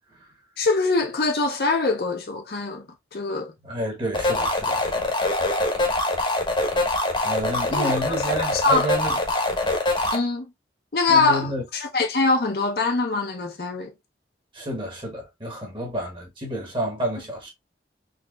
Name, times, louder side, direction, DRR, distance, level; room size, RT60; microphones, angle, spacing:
voice 1, 0.6-2.9 3.1-3.5 7.7-7.9 8.4-8.9 10.1-10.4 10.9-13.9, left 3 dB, 60° left, 0.6 m, -23 dB
voice 2, 3.6-5.2 7.2-9.2 11.1-11.6 14.5-17.5, right 1 dB, 30° right, 1.1 m, -30 dB
sound 1, 4.1-10.2, left 2 dB, 25° left, 0.9 m, -24 dB
4.1 x 2.8 x 2.3 m
head